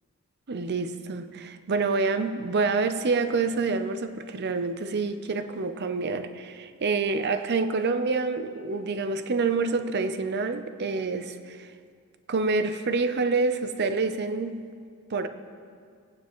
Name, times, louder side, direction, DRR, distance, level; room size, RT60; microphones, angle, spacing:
voice 1, 0.5-11.7 12.3-14.7 15.1-15.3, right 4 dB, 50° right, 9 dB, 0.6 m, -27 dB
21.0 x 8.9 x 3.1 m, 2.1 s
head